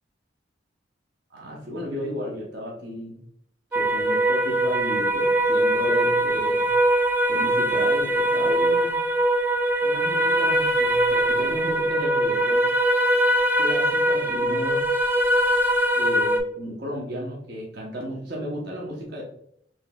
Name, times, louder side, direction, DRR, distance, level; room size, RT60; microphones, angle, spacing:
voice 1, 1.3-3.2 3.7-6.7 7.3-9.0 9.8-12.7 13.6-14.9 15.9-19.2, equal, 60° right, -3 dB, 0.9 m, -33 dB
sound 1, 3.7-16.4, right 1 dB, 10° right, 0.3 m, -22 dB
4.4 x 3.2 x 2.3 m, 0.68 s
head